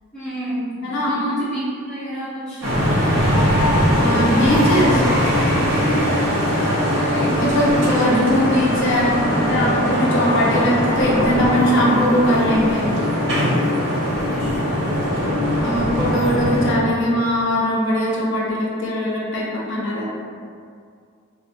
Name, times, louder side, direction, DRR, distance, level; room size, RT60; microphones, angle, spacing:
voice 1, 0.1-2.7 14.4-14.9, right 1 dB, 5° left, -16 dB, 0.6 m, -29 dB
voice 2, 0.8-1.2 3.3-3.5 3.9-5.1 5.4-12.9 15.6-20.1, equal, 55° left, -5 dB, 0.4 m, -21 dB
sound 1, 2.6-16.7, equal, 55° right, 0.6 m, -20 dB
2.4 x 2.0 x 2.5 m, 2.2 s
head